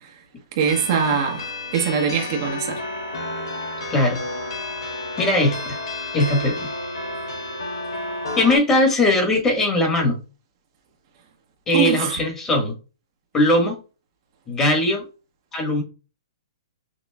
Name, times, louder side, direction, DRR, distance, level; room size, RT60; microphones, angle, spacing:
sound 1, 0.6-8.6, left 2 dB, 70° left, 2.1 m, -31 dB
voice 1, 0.6-2.8 11.7-12.1, right 7 dB, 50° right, 1.0 m, -22 dB
voice 2, 5.2-5.8 6.1-6.7 8.3-10.2 11.7-12.7 13.3-13.8 14.5-15.0 15.5-15.8, left 1 dB, 15° left, 1.5 m, -19 dB
6.1 x 2.4 x 2.3 m
hypercardioid pair, 135°, 3 cm